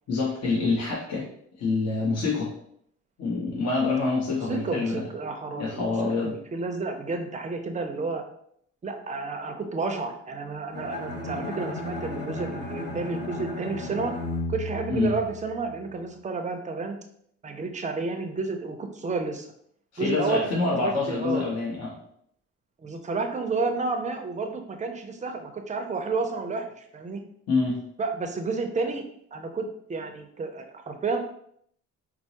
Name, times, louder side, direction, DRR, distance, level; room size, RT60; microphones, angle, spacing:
voice 1, 0.1-1.3 1.6-2.5 3.2-5.1 5.5-6.4 14.9-15.1 19.9-21.9 27.5-27.9, left 3 dB, 60° left, -5 dB, 1.0 m, -26 dB
voice 2, 4.5-5.8 6.2-8.2 8.8-14.1 14.5-17.0 17.4-19.5 20.0-20.5 20.8-21.4 22.8-27.2 28.0-29.0 29.3-31.2, right 4 dB, 25° right, 5 dB, 0.5 m, -31 dB
Bowed string instrument, 10.7-15.8, left 2 dB, 90° left, 1.3 m, -34 dB
4.3 x 2.0 x 2.9 m, 0.68 s
cardioid pair, 90°, 30 cm